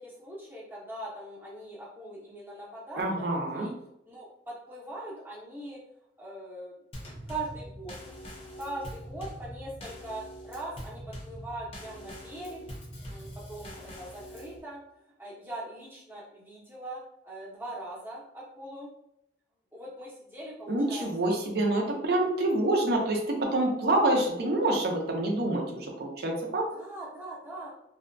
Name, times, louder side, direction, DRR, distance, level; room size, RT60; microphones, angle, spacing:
voice 1, 0.0-3.7 4.1-5.8 6.2-6.8 7.3-8.0 8.6-12.6 13.1-14.8 15.2-18.9 19.7-21.3 26.7-27.7, right 1 dB, 10° right, -5 dB, 0.6 m, -41 dB
voice 2, 3.0-3.7 20.7-26.6, right 1 dB, 60° right, 0 dB, 0.5 m, -27 dB
Drum kit / Snare drum / Bass drum, 6.9-14.6, equal, 30° left, 0.6 m, -43 dB
2.6 x 2.2 x 2.5 m, 0.79 s
head